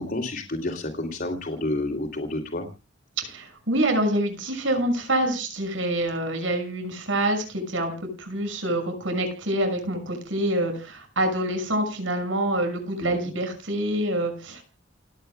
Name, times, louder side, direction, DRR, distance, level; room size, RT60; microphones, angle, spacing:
voice 1, 0.0-2.7 13.0-13.1, left 2 dB, 50° left, 2 dB, 2.7 m, -30 dB
voice 2, 3.2-14.6, right 1 dB, 85° right, 6 dB, 6.1 m, -26 dB
28.5 x 9.9 x 2.2 m, 0.31 s
head